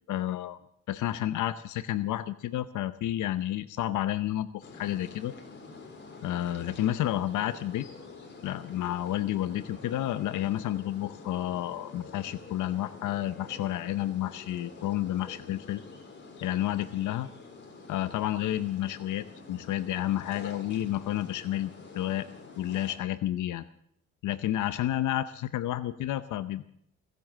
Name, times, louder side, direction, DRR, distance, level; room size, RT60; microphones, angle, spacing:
voice 1, 0.1-0.6 0.9-5.3 6.2-7.9 8.4-15.8 16.4-17.3 17.9-22.3 22.6-23.6 24.2-26.6, left 13 dB, 80° left, 13 dB, 0.8 m, -30 dB
sound 1, 4.6-23.0, left 3 dB, 35° left, 4.0 m, -47 dB
23.0 x 7.9 x 7.4 m, 0.68 s
cardioid pair, 90°, 30 cm